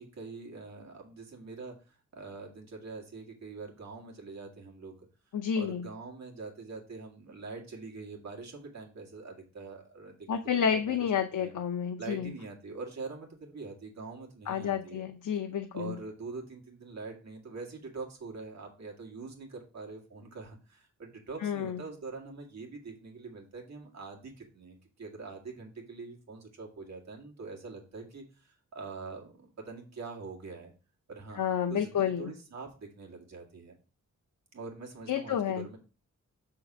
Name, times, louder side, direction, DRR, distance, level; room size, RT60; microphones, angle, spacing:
voice 1, 0.0-4.9 5.5-11.0 11.3-11.5 12.0-15.0 15.7-30.7 31.1-33.8 34.5-35.8, right 4 dB, 60° right, 0 dB, 1.9 m, -44 dB
voice 2, 5.3-5.8 10.3-12.3 14.5-15.9 21.4-21.8 31.4-32.3 35.1-35.7, left 8 dB, 75° left, 5 dB, 0.7 m, -30 dB
6.6 x 3.8 x 6.0 m, 0.34 s
wide cardioid pair, 175°, 31 cm